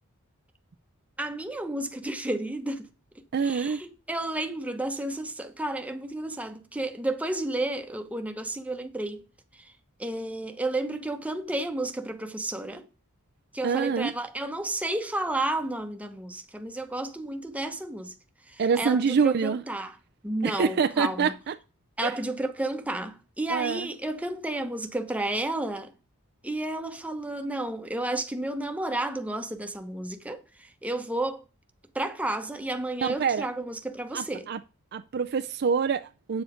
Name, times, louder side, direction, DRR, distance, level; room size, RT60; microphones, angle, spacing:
voice 1, 1.2-2.9 3.4-9.2 10.0-12.8 13.5-18.1 18.5-19.9 20.2-21.3 22.0-25.9 26.4-31.4 31.9-34.5, right 1 dB, 5° right, 0.9 m, -32 dB
voice 2, 3.3-3.8 13.6-14.1 18.6-19.6 20.4-21.6 22.0-22.2 23.5-23.9 33.0-33.5 34.1-34.6 34.9-36.4, right 6 dB, 50° right, 0.4 m, -26 dB
8.9 x 7.0 x 4.9 m
head